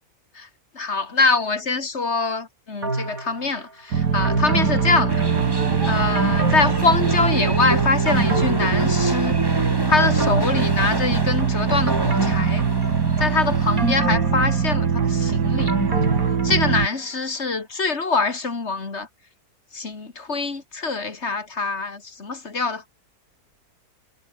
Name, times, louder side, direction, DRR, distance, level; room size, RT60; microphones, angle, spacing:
voice 1, 0.7-5.2 5.9-9.4 9.9-12.7 13.2-15.7 16.4-19.1 19.7-22.8, left 4 dB, 45° left, 2.7 m, -24 dB
sound 1, 2.8-3.6 4.2-5.7 6.2-7.5 7.8-9.5 10.0-11.3 11.9-13.3 13.8-17.0 17.4-17.5, right 2 dB, 55° right, 6.1 m, -28 dB
sound 2, 3.9-16.9, right 6 dB, 90° right, 2.5 m, -22 dB
sound 3, 5.1-13.9, right 1 dB, 15° right, 3.3 m, -29 dB
omnidirectional pair, 1.7 m